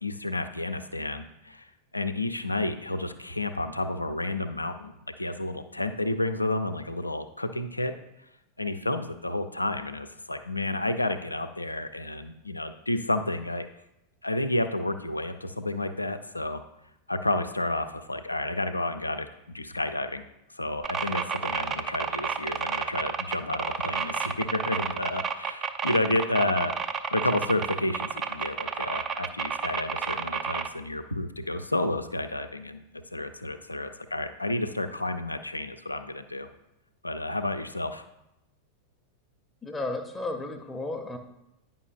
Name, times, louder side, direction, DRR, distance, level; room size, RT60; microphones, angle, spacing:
voice 1, 0.0-7.9 8.6-13.7 14.2-16.6 17.1-20.2 20.5-26.7 27.1-32.8 33.1-36.5 37.0-38.0, left 1 dB, 85° left, 9 dB, 0.4 m, -30 dB
sound 1, 20.8-30.7, right 6 dB, 25° right, 0.4 m, -31 dB
voice 2, 39.6-41.2, left 2 dB, 10° left, 3 dB, 0.7 m, -33 dB
9.6 x 5.4 x 2.4 m, 0.89 s
figure-of-eight pair, 90°, 0 cm